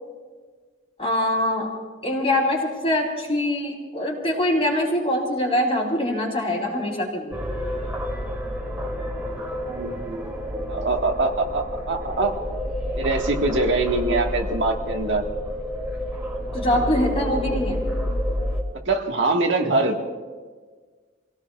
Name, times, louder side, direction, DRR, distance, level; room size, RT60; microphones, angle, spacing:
voice 1, 1.0-1.7 2.0-7.4 16.5-17.8, left 1 dB, 30° left, -2 dB, 4.0 m, -23 dB
sound 1, 7.3-18.6, equal, 10° right, 2.2 m, -29 dB
voice 2, 9.7-10.4 10.7-12.3 12.9-15.2 18.8-20.0, right 3 dB, 65° right, 1 dB, 1.6 m, -23 dB
29.5 x 17.5 x 2.4 m, 1.5 s
head